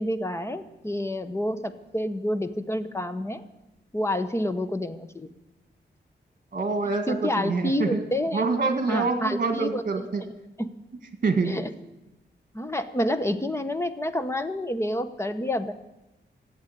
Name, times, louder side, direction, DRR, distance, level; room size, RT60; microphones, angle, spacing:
voice 1, 0.0-3.4 3.9-5.3 7.1-8.4 8.9-9.8 10.6-10.7 11.4-11.7 12.5-15.7, left 1 dB, 15° left, 10 dB, 0.8 m, -28 dB
voice 2, 6.5-8.0 8.3-10.2 11.2-11.6, right 4 dB, 45° right, 7 dB, 1.9 m, -26 dB
14.5 x 8.0 x 9.8 m, 0.97 s
wide cardioid pair, 160°, 19 cm